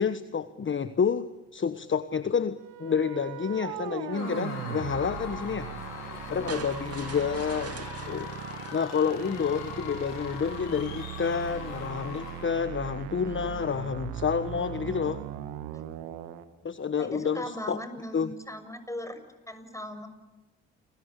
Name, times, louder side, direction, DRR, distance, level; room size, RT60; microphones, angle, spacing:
voice 1, 0.0-5.7 6.3-8.3 8.7-15.2 16.6-17.8 18.1-18.3, left 6 dB, 35° left, 12 dB, 1.3 m, -29 dB
sound 1, 2.6-16.4, right 11 dB, 80° right, 2.1 m, -39 dB
Screaming / Cheering / Crowd, 4.1-12.7, left 7 dB, 85° left, 4.9 m, -42 dB
voice 2, 6.3-6.6 15.7-15.8 17.0-19.2 19.5-20.1, left 1 dB, 10° left, 10 dB, 6.7 m, -39 dB
sound 2, 6.5-9.7, right 7 dB, 45° right, 2.3 m, -43 dB
30.0 x 21.5 x 8.3 m, 1.1 s
hypercardioid pair, 55°, 32 cm